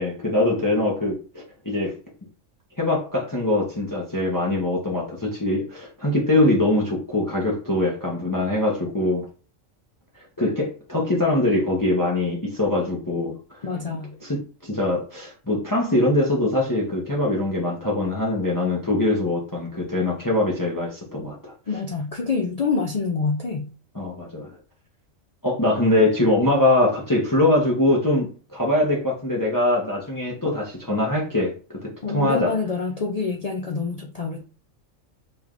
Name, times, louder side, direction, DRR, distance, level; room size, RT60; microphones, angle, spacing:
voice 1, 0.0-1.9 2.8-9.3 10.4-13.6 14.2-21.5 23.9-24.6 25.4-32.5, left 1 dB, 20° left, 0.7 m, -23 dB
voice 2, 13.6-14.1 21.7-23.7 32.0-34.4, left 4 dB, 60° left, 0.4 m, -26 dB
5.0 x 3.1 x 2.5 m
omnidirectional pair, 1.3 m